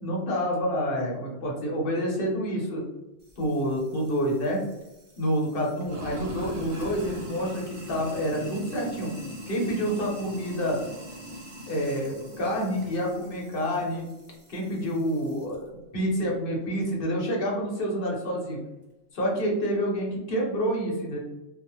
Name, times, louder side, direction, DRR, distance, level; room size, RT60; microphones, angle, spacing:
voice 1, 0.0-2.8 3.4-4.6 5.2-9.1 9.5-10.8 11.7-14.0 14.5-18.6 19.1-21.2, equal, 50° left, -2 dB, 0.9 m, -28 dB
Sink (filling or washing), 3.2-15.6, equal, 50° right, 0.3 m, -42 dB
2.4 x 2.1 x 2.9 m, 0.96 s
omnidirectional pair, 1.3 m